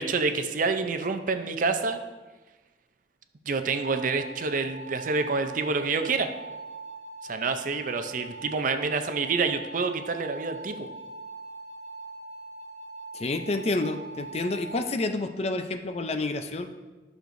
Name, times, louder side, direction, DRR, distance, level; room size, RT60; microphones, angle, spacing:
voice 1, 0.0-2.0 3.5-6.3 7.2-10.9, right 4 dB, 45° right, 8 dB, 0.5 m, -27 dB
sound 1, 3.6-14.9, right 2 dB, 85° right, 1.4 m, -42 dB
voice 2, 13.1-16.7, left 2 dB, 35° left, 8 dB, 0.5 m, -29 dB
11.5 x 6.5 x 2.6 m, 1.2 s
head